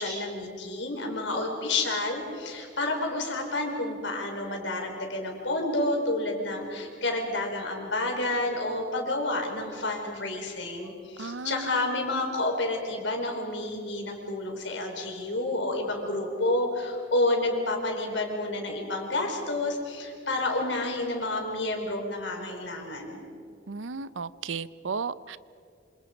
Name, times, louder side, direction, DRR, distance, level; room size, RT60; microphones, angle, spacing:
voice 1, 0.0-23.2, left 2 dB, 75° left, 2 dB, 4.8 m, -30 dB
voice 2, 11.2-12.1 23.7-25.4, right 4 dB, 90° right, 17 dB, 0.7 m, -35 dB
27.5 x 27.0 x 5.3 m, 2.5 s
head